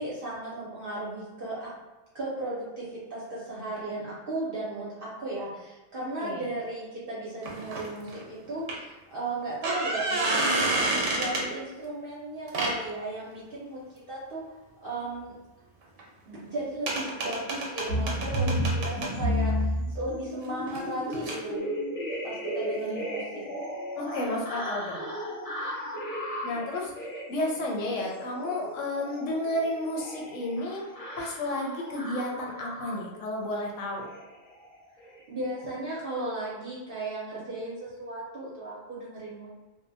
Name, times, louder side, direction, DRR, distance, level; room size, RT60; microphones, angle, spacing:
voice 1, 0.0-1.7 2.1-13.8 14.1-14.4 14.8-15.3 16.3-21.7 22.2-23.4 35.3-39.5, right 2 dB, 55° right, -7 dB, 0.7 m, -35 dB
sound 1, 7.4-8.2 8.7-8.8 9.4-11.5 12.5-12.8 16.0-16.1 16.4-16.5 16.9-19.1 20.7-20.8 21.1-21.4, right 2 dB, 85° right, 1.0 m, -29 dB
sound 2, 17.9-33.3 34.0-34.3 34.5-34.8 35.0-35.2 35.5-35.7, equal, 35° left, 0.6 m, -33 dB
voice 2, 22.7-23.0 23.9-25.0 26.4-30.8 31.2-34.1, left 1 dB, 90° left, -1 dB, 1.0 m, -32 dB
2.7 x 2.1 x 2.6 m, 1.1 s
omnidirectional pair, 1.3 m